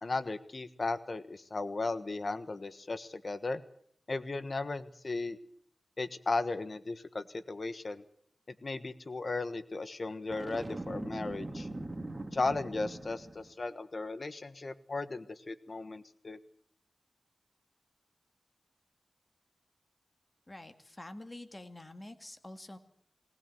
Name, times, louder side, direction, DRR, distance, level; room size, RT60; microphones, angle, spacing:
voice 1, 0.0-3.6 4.1-5.4 6.0-8.0 8.6-11.7 12.3-16.4, left 3 dB, 50° left, 12 dB, 1.3 m, -36 dB
Boom, 10.3-13.5, right 2 dB, 25° right, 3.5 m, -41 dB
voice 2, 20.5-22.8, left 1 dB, 25° left, 8 dB, 2.0 m, -47 dB
19.0 x 19.0 x 7.8 m, 0.64 s
wide cardioid pair, 80°, 0 cm